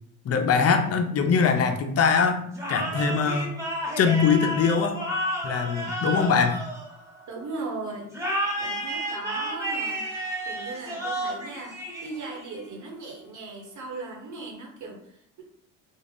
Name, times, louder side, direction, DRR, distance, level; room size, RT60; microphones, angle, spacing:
voice 1, 0.2-2.4 2.7-3.5 4.0-5.0 5.4-6.6, left 5 dB, 45° left, 6 dB, 0.6 m, -22 dB
sound 1, 2.5-7.4 8.1-12.5, right 1 dB, 10° right, 1.3 m, -31 dB
voice 2, 7.3-8.1 8.6-10.0 10.5-11.7 12.0-15.0, right 3 dB, 55° right, 0 dB, 1.2 m, -37 dB
3.6 x 2.4 x 3.5 m, 0.68 s
cardioid pair, 95°, 35 cm